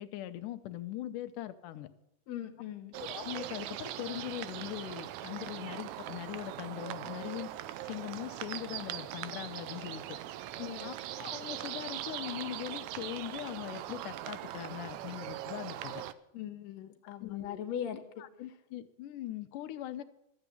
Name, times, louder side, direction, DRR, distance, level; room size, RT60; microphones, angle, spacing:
voice 1, 0.0-1.9 2.9-7.5 7.8-10.2 10.8-16.0 17.0-17.6 18.2-20.0, left 13 dB, 85° left, 10 dB, 2.4 m, -41 dB
voice 2, 2.3-2.9 10.6-10.9 16.3-18.0, left 9 dB, 65° left, 3 dB, 2.3 m, -40 dB
sound 1, 2.9-16.1, right 13 dB, 75° right, 1.9 m, -41 dB
13.0 x 8.1 x 9.8 m, 0.80 s
omnidirectional pair, 3.6 m